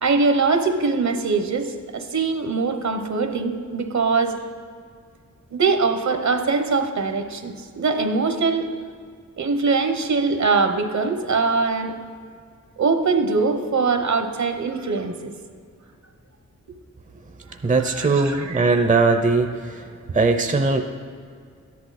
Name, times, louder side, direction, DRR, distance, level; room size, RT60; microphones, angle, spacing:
voice 1, 0.0-4.4 5.5-8.7 9.4-11.9 12.8-15.3 17.8-19.2, right 4 dB, 65° right, 7 dB, 1.1 m, -22 dB
voice 2, 17.6-19.9 20.1-20.8, right 3 dB, 25° right, 6 dB, 0.6 m, -20 dB
13.5 x 11.0 x 4.2 m, 2.1 s
wide cardioid pair, 125°, 31 cm